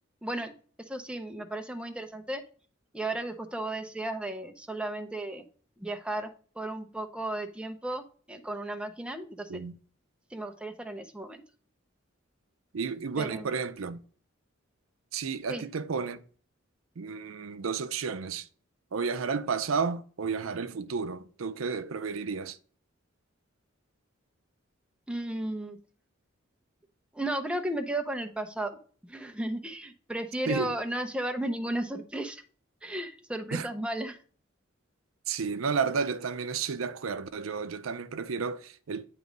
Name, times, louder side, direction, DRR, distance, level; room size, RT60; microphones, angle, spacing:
voice 1, 0.2-0.5 0.9-2.4 2.9-5.4 5.8-8.0 8.3-9.5 10.3-11.4 13.2-13.5 15.5-15.6 25.1-25.8 27.1-28.8 29.1-32.4 32.8-34.2, right 1 dB, 5° right, 0.6 m, -34 dB
voice 2, 12.7-14.0 15.1-16.2 17.0-18.4 18.9-22.6 30.5-30.7 33.5-33.7 35.3-39.1, right 5 dB, 90° right, 0.5 m, -32 dB
9.2 x 3.1 x 5.1 m
head